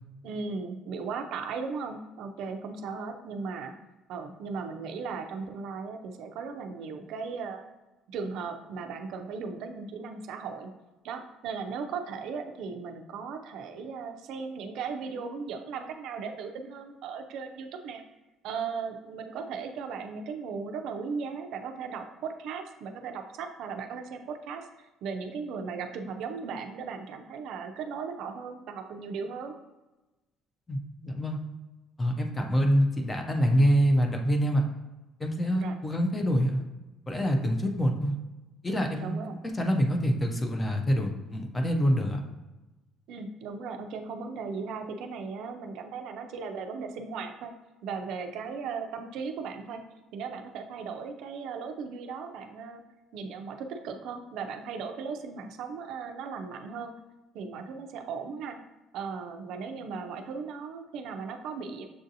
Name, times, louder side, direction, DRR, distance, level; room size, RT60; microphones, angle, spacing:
voice 1, 0.2-3.7 4.1-7.6 8.1-10.7 11.0-18.0 18.4-29.6 35.5-35.7 39.0-39.4 43.1-47.5 47.8-49.8 50.1-52.8 53.1-56.9 57.3-58.6 58.9-61.8, right 5 dB, 60° right, 5 dB, 0.4 m, -37 dB
voice 2, 30.7-31.4 32.0-34.6 35.2-36.6 37.1-38.1 38.6-39.2 39.5-42.2, equal, 10° left, 3 dB, 0.4 m, -25 dB
6.8 x 2.5 x 2.7 m, 1.1 s
cardioid pair, 170°, 0 cm